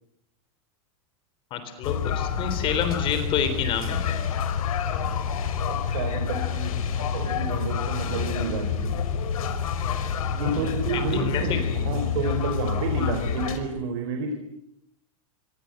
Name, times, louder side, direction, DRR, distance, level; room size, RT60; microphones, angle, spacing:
voice 1, 1.5-4.0 10.5-11.6, left 7 dB, 30° left, 9 dB, 3.5 m, -28 dB
sound 1, 1.8-13.6, left 7 dB, 80° left, 5.0 m, -28 dB
voice 2, 5.6-9.0 10.3-14.3, right 5 dB, 55° right, 6 dB, 4.4 m, -30 dB
27.0 x 25.5 x 7.8 m, 0.81 s
supercardioid pair, 165°, 18 cm